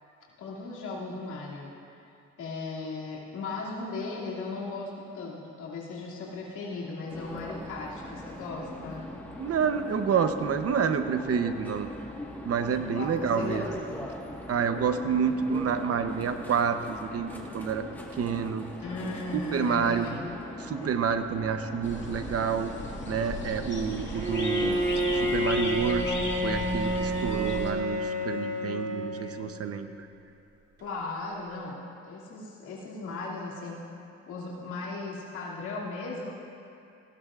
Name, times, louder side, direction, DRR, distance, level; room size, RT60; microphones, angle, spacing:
voice 1, 0.4-1.7 2.4-9.1 12.9-14.1 18.8-20.3 30.8-31.8 32.0-33.8 34.3-36.3, left 3 dB, 80° left, -6 dB, 2.7 m, -37 dB
sound 1, 7.1-25.5, left 1 dB, 5° left, 1.5 m, -41 dB
voice 2, 9.4-11.9 12.4-13.7 14.5-17.9 18.1-18.6 19.3-20.1 20.6-22.7 23.1-24.8 25.1-30.1, right 6 dB, 50° right, 8 dB, 0.9 m, -28 dB
sound 2, 21.8-27.7, left 2 dB, 40° left, 2.2 m, -36 dB
Bowed string instrument, 24.1-29.6, equal, 35° right, 3.5 m, -29 dB
18.5 x 16.0 x 2.5 m, 2.6 s
cardioid pair, 90°, 30 cm